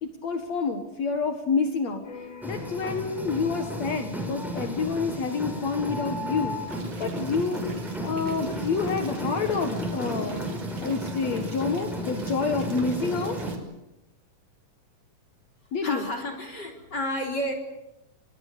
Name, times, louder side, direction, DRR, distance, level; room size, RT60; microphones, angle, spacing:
voice 1, 0.0-6.6 7.0-7.6 8.0-10.5 10.8-13.4 15.7-16.0, left 5 dB, 60° left, 6 dB, 2.7 m, -28 dB
sound 1, 2.0-9.5, left 5 dB, 90° left, 5.9 m, -50 dB
sound 2, 2.4-13.6, equal, ahead, 5.8 m, -33 dB
sound 3, 6.7-13.6, right 6 dB, 55° right, 3.2 m, -49 dB
voice 2, 15.8-17.5, equal, 30° left, 2 dB, 4.2 m, -31 dB
27.0 x 20.0 x 8.5 m, 0.93 s
omnidirectional pair, 3.8 m